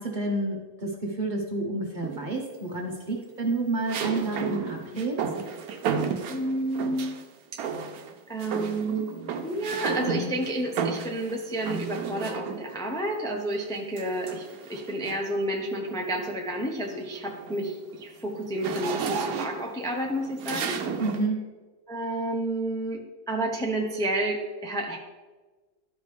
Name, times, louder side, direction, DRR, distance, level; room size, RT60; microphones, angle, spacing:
voice 1, 0.0-5.2 21.0-21.4, right 2 dB, 35° right, 0 dB, 1.0 m, -29 dB
sound 1, 2.0-2.6 3.9-7.2 7.6-8.1 8.4-12.8 14.0-15.4 15.9-16.1 16.5-21.3, right 6 dB, 80° right, 1.1 m, -33 dB
voice 2, 6.3-7.2 8.3-9.1 9.4-14.4 14.7-20.8 21.9-23.0 23.3-25.0, right 1 dB, 5° left, 0 dB, 0.6 m, -30 dB
12.5 x 5.1 x 3.3 m, 1.3 s
omnidirectional pair, 1.6 m